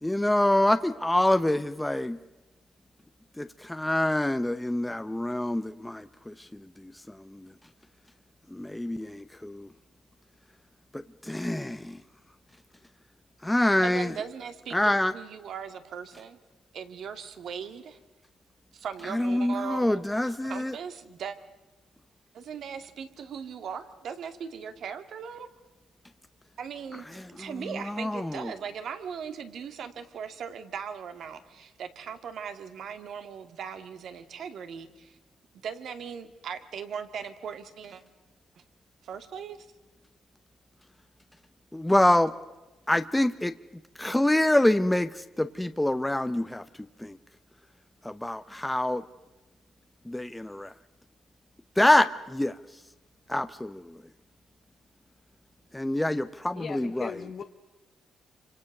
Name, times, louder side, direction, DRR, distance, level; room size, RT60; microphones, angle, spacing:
voice 1, 0.0-2.2 3.4-7.5 8.5-9.7 10.9-12.0 13.4-14.1 14.7-15.1 19.1-20.8 27.1-28.5 41.7-42.3 42.9-43.5 44.0-46.6 47.0-47.2 48.0-49.0 50.1-50.7 51.8-52.5 53.3-54.0 55.7-57.1, left 1 dB, 10° left, 9 dB, 0.9 m, -26 dB
voice 2, 13.8-16.4 16.7-18.0 18.7-21.4 22.3-25.5 26.6-27.1 27.3-35.2 35.6-38.0 39.0-39.6, right 7 dB, 65° right, 8 dB, 2.2 m, -39 dB
voice 3, 56.5-57.4, left 6 dB, 55° left, 4 dB, 1.4 m, -37 dB
27.5 x 25.5 x 6.6 m, 1.1 s
cardioid pair, 90°, 0 cm